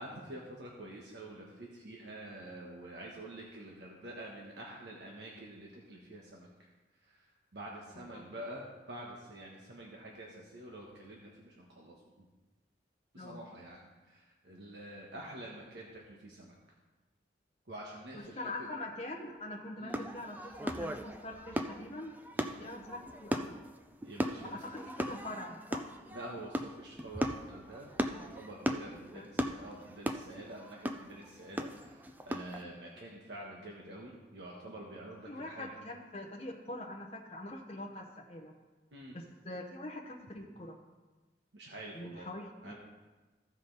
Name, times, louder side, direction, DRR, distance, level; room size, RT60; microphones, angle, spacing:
voice 1, 0.0-6.5 7.0-7.2 7.5-11.9 13.1-16.6 17.7-18.7 19.8-20.1 22.3-22.9 24.0-24.6 26.1-35.7 38.9-39.1 41.5-42.3 42.6-42.7, right 1 dB, 70° right, -2 dB, 1.2 m, -47 dB
voice 2, 18.1-22.1 22.6-23.6 24.5-25.9 28.9-29.3 35.3-38.5 39.1-40.8 41.9-42.7, left 1 dB, 30° left, -1 dB, 0.8 m, -44 dB
sound 1, 19.9-32.6, equal, 10° right, 0.4 m, -38 dB
15.0 x 5.3 x 3.9 m, 1.2 s
head